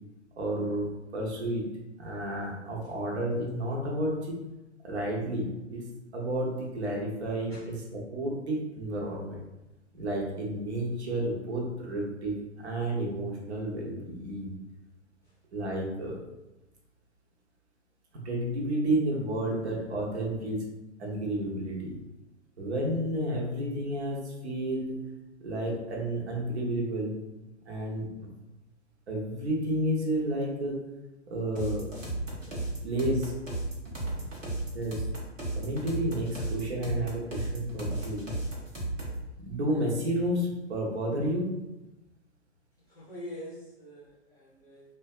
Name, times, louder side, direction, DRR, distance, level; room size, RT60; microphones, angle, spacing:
voice 1, 0.4-1.7 2.0-4.4 4.8-5.9 6.1-9.4 9.9-14.5 15.5-16.2 18.2-20.6 21.0-21.9 22.6-25.0 25.4-27.2 27.6-28.3 29.1-30.8 31.3-31.9 32.8-33.3 34.7-35.0 35.6-38.3 39.4-41.6, right 1 dB, 60° right, -2 dB, 0.8 m, -31 dB
sound 1, 31.6-39.2, right 2 dB, 90° right, 0.8 m, -34 dB
voice 2, 42.9-44.8, left 1 dB, 10° left, -9 dB, 0.6 m, -44 dB
2.6 x 2.2 x 2.3 m, 0.99 s
figure-of-eight pair, 115°, 37 cm